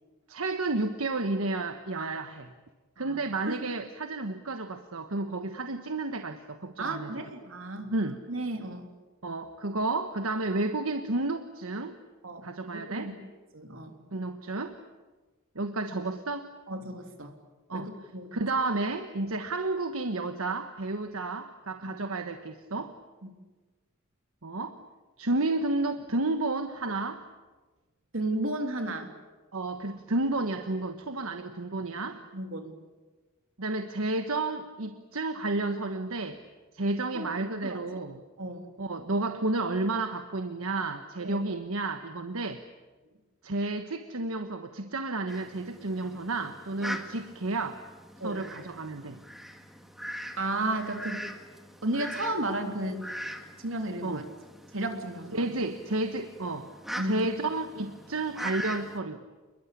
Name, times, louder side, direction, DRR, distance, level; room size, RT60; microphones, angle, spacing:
voice 1, 0.3-2.5 3.0-7.1 7.9-8.2 9.2-12.0 12.4-13.1 14.1-14.8 15.5-16.5 17.7-17.9 18.3-22.9 24.4-24.8 25.2-27.2 29.5-32.2 33.6-36.4 36.7-38.2 38.8-42.6 43.4-47.8 48.2-49.2 54.0-54.2 55.3-56.7 57.0-59.2, right 2 dB, 85° right, 7 dB, 1.3 m, -31 dB
voice 2, 6.8-7.9 8.3-8.9 12.2-12.5 12.7-13.2 13.5-13.9 16.7-17.3 17.7-18.3 23.2-23.3 28.1-29.1 32.3-32.7 37.1-37.9 38.4-38.7 41.2-41.4 48.2-48.4 50.4-51.3 51.8-53.1 53.6-54.2 54.7-55.5 57.0-57.1, right 2 dB, 65° right, 5 dB, 3.3 m, -33 dB
Fowl, 45.3-59.0, equal, ahead, 1.9 m, -42 dB
28.5 x 22.0 x 8.5 m, 1.3 s
head